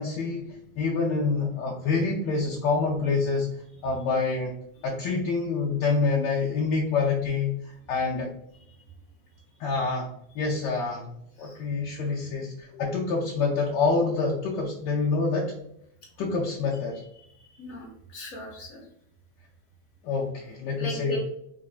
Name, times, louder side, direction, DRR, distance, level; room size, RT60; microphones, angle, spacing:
voice 1, 0.0-8.3 9.6-11.1 11.4-15.5 16.2-17.0 20.0-21.2, left 4 dB, 75° left, -2 dB, 1.2 m, -27 dB
voice 2, 17.4-18.8 20.8-21.2, equal, 55° left, -1 dB, 1.2 m, -38 dB
4.8 x 3.0 x 2.4 m, 0.73 s
omnidirectional pair, 2.1 m